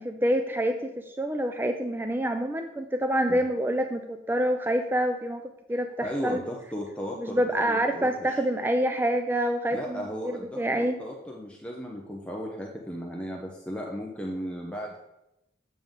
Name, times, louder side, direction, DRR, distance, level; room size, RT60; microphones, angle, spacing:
voice 1, 0.0-5.4 5.7-6.4 7.2-10.9, equal, 10° right, 6 dB, 0.3 m, -27 dB
voice 2, 6.0-8.4 9.7-15.0, equal, 5° left, -1 dB, 0.7 m, -36 dB
7.7 x 7.1 x 3.6 m, 0.88 s
head